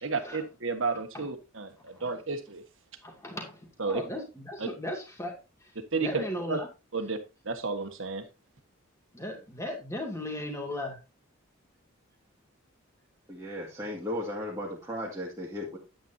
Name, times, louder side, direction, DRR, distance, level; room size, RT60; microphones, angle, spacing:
voice 1, 0.0-2.6 3.8-4.0 4.6-4.7 5.9-6.6 6.9-7.2 7.4-8.2, right 4 dB, 60° right, 7 dB, 1.4 m, -32 dB
voice 2, 3.0-5.7 6.0-6.7 9.1-11.0, left 1 dB, 15° left, 1 dB, 2.3 m, -37 dB
voice 3, 13.3-15.8, left 1 dB, 15° right, -5 dB, 2.0 m, -35 dB
9.5 x 9.2 x 2.7 m, 0.27 s
head